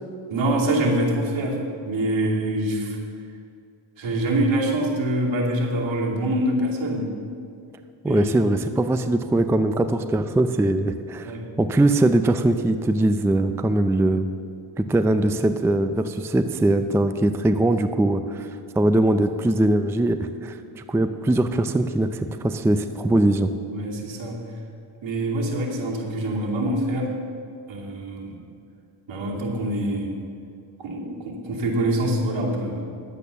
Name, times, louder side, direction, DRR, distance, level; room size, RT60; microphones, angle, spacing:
voice 1, 0.3-1.6 1.8-3.0 4.0-7.1 8.1-8.5 11.2-11.5 23.7-24.4 25.0-27.1 27.7-28.4 29.1-30.1 30.8-32.9, right 1 dB, 70° right, -2 dB, 2.7 m, -25 dB
voice 2, 8.0-14.3 14.8-23.5, right 1 dB, 5° right, 9 dB, 0.4 m, -21 dB
10.5 x 8.4 x 6.8 m, 2.5 s
cardioid pair, 95°, 48 cm